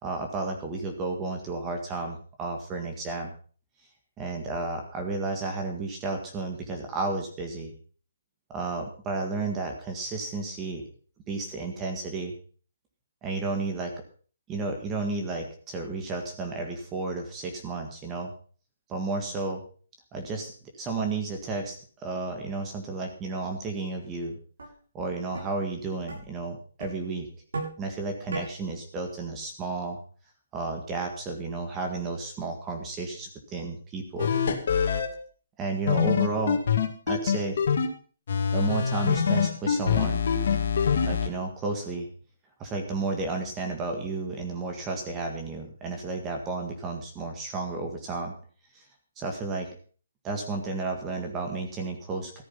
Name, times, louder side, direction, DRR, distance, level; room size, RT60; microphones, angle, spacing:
voice 1, 0.0-3.3 4.2-7.7 8.5-10.8 11.3-12.3 13.2-13.9 14.5-18.3 18.9-19.6 20.1-24.4 24.9-27.3 27.8-30.0 30.5-34.3 35.6-36.6 37.1-37.6 38.5-40.2 41.0-42.1 42.6-48.3 48.7-48.8 49.2-49.7 50.2-52.4, right 3 dB, 15° right, 3 dB, 1.8 m, -32 dB
sound 1, 24.0-24.1 24.6-24.7 25.3-25.5 26.1-26.2 26.8-27.0 27.5-27.8 28.3-28.5, right 3 dB, 80° right, 7.8 m, -34 dB
sound 2, 34.2-35.1 35.9-37.9 38.3-41.3, left 7 dB, 50° left, 2.3 m, -24 dB
14.0 x 9.6 x 5.7 m, 0.41 s
hypercardioid pair, 170°, 0 cm